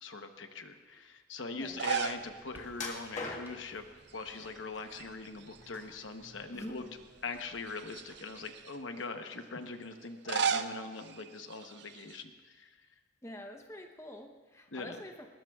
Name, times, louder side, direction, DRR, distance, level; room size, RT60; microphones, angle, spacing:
voice 1, 0.0-3.8 4.1-6.8 7.2-12.8 14.7-15.0, left 3 dB, 70° left, 6 dB, 1.0 m, -42 dB
voice 2, 1.5-1.8 6.5-6.8 13.2-15.3, left 1 dB, 15° left, 3 dB, 0.8 m, -46 dB
sound 1, 1.5-8.9, right 1 dB, 10° right, 2.1 m, -61 dB
sound 2, 1.6-2.3 2.6-2.7 4.1-4.6 4.9-6.0 6.6-6.7 7.6-8.8 10.0-12.2, right 6 dB, 55° right, 0.6 m, -36 dB
sound 3, 2.7-3.8 4.4-5.1 5.5-6.4 6.8-7.0 7.5-7.6, left 3 dB, 35° left, 1.6 m, -42 dB
20.0 x 20.0 x 2.4 m, 1.4 s
head